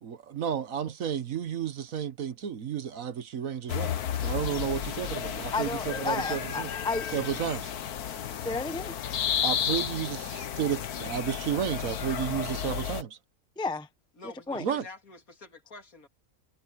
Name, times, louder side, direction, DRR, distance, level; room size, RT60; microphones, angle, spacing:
voice 1, 0.0-6.7 7.1-7.7 9.4-13.2 14.6-14.8, right 8 dB, 65° right, 1.5 m, -32 dB
sound 1, 3.7-13.0, left 9 dB, 85° left, 1.5 m, -32 dB
voice 2, 5.5-7.4 8.4-9.0 13.6-13.9 14.2-14.6, left 3 dB, 5° left, 0.7 m, -33 dB
voice 3, 14.2-16.1, left 3 dB, 70° left, 2.9 m, -47 dB
omnidirectional pair, 1.6 m